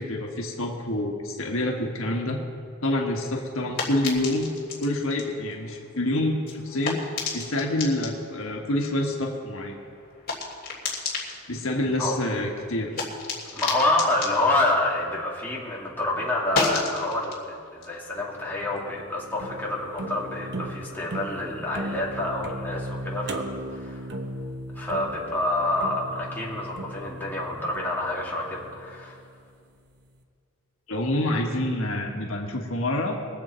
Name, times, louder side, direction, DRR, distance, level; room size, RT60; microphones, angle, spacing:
voice 1, 0.0-2.4 2.8-4.5 4.8-9.8 11.5-12.9 30.9-33.2, left 1 dB, 75° left, 1 dB, 1.6 m, -27 dB
sound 1, 2.9-15.7 16.0-19.2, left 4 dB, 45° left, 2.9 m, -35 dB
voice 2, 13.5-24.1 24.7-29.2, left 2 dB, 10° left, -5 dB, 2.3 m, -27 dB
sound 2, 18.2-29.4, right 1 dB, 55° right, 1.0 m, -37 dB
22.5 x 7.9 x 4.4 m, 2.3 s
head